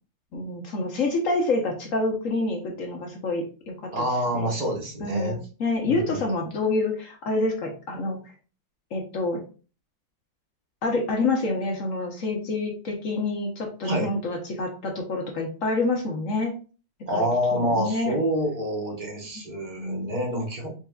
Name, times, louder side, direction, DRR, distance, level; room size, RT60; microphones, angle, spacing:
voice 1, 0.3-4.0 4.3-4.5 5.0-8.2 8.9-9.4 10.8-16.5 17.1-18.2 19.8-20.1, left 2 dB, 55° left, 1 dB, 1.0 m, -27 dB
voice 2, 3.9-5.4 5.8-6.2 13.8-14.1 17.1-20.7, equal, 30° right, -1 dB, 1.1 m, -27 dB
4.6 x 3.6 x 2.3 m, 0.36 s
omnidirectional pair, 2.1 m